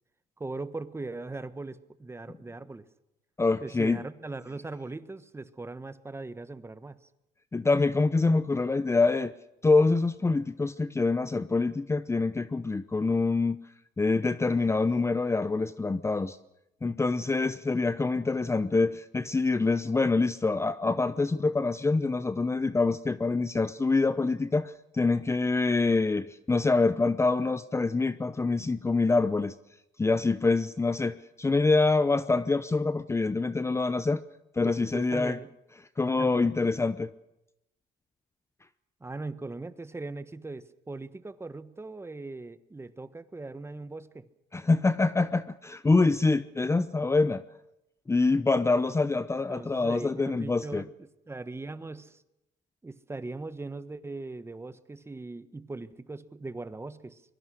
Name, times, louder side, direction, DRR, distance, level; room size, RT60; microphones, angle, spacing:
voice 1, 0.4-2.9 3.6-7.0 34.6-35.5 36.2-36.5 39.0-44.3 49.3-50.9 51.3-52.2 52.8-57.2, right 3 dB, 15° right, 13 dB, 1.3 m, -39 dB
voice 2, 3.4-4.0 7.5-9.3 9.6-13.6 14.0-16.4 16.8-29.5 30.0-34.2 34.5-35.4 36.0-37.1 44.5-47.4 48.1-50.8, left 3 dB, 15° left, 14 dB, 0.8 m, -25 dB
24.5 x 22.5 x 6.4 m, 0.88 s
cardioid pair, 110°, 17 cm